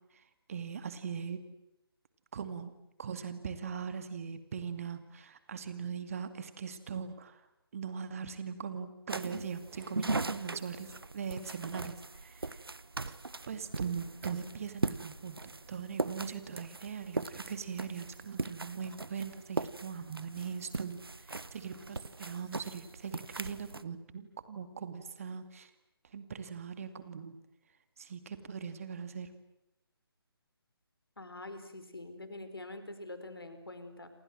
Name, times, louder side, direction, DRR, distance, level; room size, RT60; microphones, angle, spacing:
voice 1, 0.1-1.4 2.3-2.7 3.0-7.4 7.7-12.7 13.1-13.2 13.5-25.7 26.0-27.4 28.0-29.3, right 6 dB, 35° right, 10 dB, 2.4 m, -41 dB
sound 1, 9.1-23.8, right 3 dB, 65° right, 1.3 m, -39 dB
voice 2, 31.2-34.1, left 2 dB, 65° left, 9 dB, 4.7 m, -45 dB
29.0 x 26.5 x 7.7 m, 0.87 s
figure-of-eight pair, 145°, 13 cm